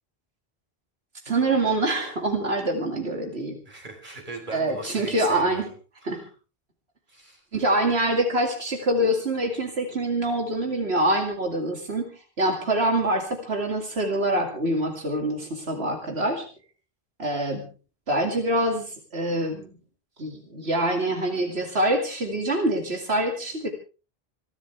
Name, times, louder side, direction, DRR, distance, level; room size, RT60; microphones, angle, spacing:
voice 1, 1.3-3.6 4.5-5.7 6.0-6.2 7.5-12.1 12.4-16.5 17.2-17.7 18.1-19.7 20.2-23.7, right 1 dB, 90° right, 3 dB, 2.7 m, -25 dB
voice 2, 3.6-5.6 6.0-6.3 7.1-7.4, right 2 dB, 50° right, 3 dB, 4.5 m, -39 dB
27.5 x 12.0 x 3.4 m, 0.35 s
omnidirectional pair, 1.0 m